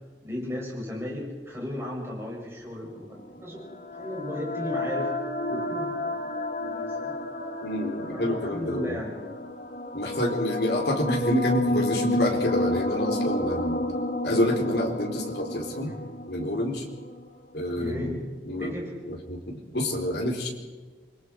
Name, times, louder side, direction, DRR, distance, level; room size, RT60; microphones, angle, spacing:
voice 1, 0.2-3.6 3.9-5.1 5.5-6.3 6.6-7.2 8.1-9.3 15.8-16.0 17.8-18.2 18.5-18.9, left 1 dB, 15° right, -4 dB, 7.6 m, -35 dB
sound 1, 3.1-17.3, left 1 dB, 45° left, 1.3 m, -31 dB
voice 2, 7.6-9.0 9.9-13.8 14.2-15.9 16.3-16.8 17.5-18.7 19.1-20.5, left 1 dB, 60° left, 1 dB, 4.2 m, -28 dB
28.0 x 22.0 x 4.9 m, 1.3 s
head